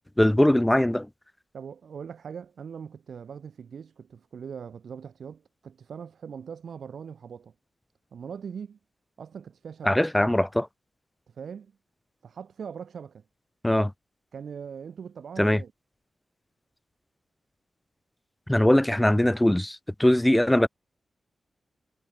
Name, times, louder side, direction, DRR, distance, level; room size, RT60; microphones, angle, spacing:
voice 1, 0.2-1.1 9.8-10.7 13.6-13.9 15.4-15.6 18.5-20.7, left 1 dB, 10° left, 0.4 m, -21 dB
voice 2, 1.5-7.5 8.1-8.8 9.2-10.0 11.3-11.7 12.2-13.2 14.3-15.7, right 7 dB, 80° right, 3.3 m, -41 dB
wide cardioid pair, 115°, 0 cm